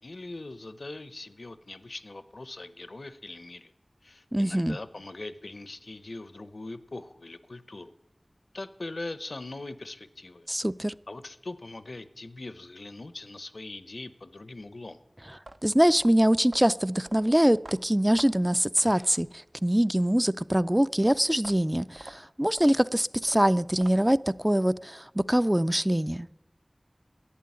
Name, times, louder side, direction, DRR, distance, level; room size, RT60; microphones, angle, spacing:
voice 1, 0.0-3.7 4.0-7.9 8.5-10.5 11.1-15.0, left 2 dB, 80° left, 0.7 m, -41 dB
voice 2, 4.3-4.8 10.5-10.9 15.6-26.3, equal, 15° right, 0.4 m, -24 dB
sound 1, 15.3-19.6 21.3-24.3, right 2 dB, 65° right, 0.6 m, -48 dB
11.5 x 8.5 x 9.6 m
wide cardioid pair, 45°, 0 cm